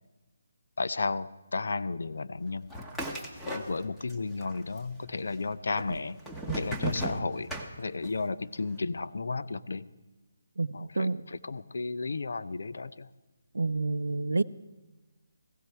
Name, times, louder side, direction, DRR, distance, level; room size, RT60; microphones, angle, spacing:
voice 1, 0.8-2.7 3.5-6.2 6.5-7.5 7.8-9.9 10.7-13.1, left 3 dB, 70° left, 14 dB, 0.6 m, -33 dB
sound 1, 2.7-4.1 4.4-5.1 5.8-8.2, right 1 dB, 5° left, 1.1 m, -35 dB
voice 2, 10.6-11.2 13.5-14.4, right 3 dB, 90° right, 15 dB, 0.5 m, -29 dB
16.0 x 16.0 x 4.6 m, 1.2 s
hypercardioid pair, 165°, 0 cm